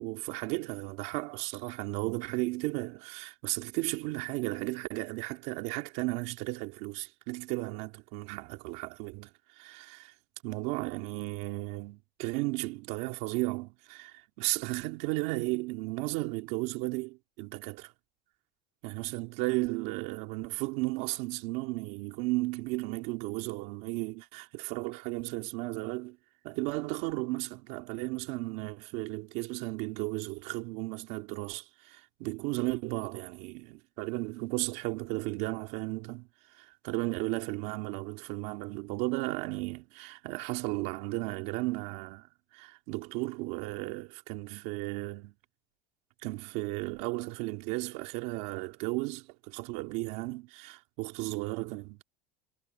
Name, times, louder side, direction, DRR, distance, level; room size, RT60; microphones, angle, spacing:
voice 1, 0.0-10.1 10.4-17.9 18.8-26.2 26.4-36.3 36.6-42.3 42.5-45.3 46.2-52.0, right 22 dB, 60° right, 2.9 m, -34 dB
cardioid pair, 170°, 16 cm